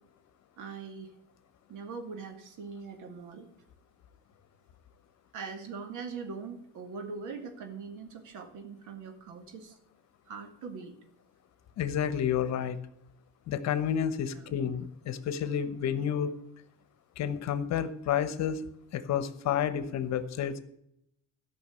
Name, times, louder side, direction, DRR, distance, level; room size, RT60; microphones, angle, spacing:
voice 1, 0.6-1.1 1.7-3.5 5.3-9.8 10.3-11.0 14.3-14.6, right 5 dB, 70° right, 6 dB, 2.3 m, -42 dB
voice 2, 11.8-12.8 13.5-16.3 17.2-18.6 18.9-20.6, left 9 dB, 55° left, 13 dB, 1.1 m, -30 dB
13.0 x 6.0 x 8.5 m, 0.74 s
cardioid pair, 120°, 31 cm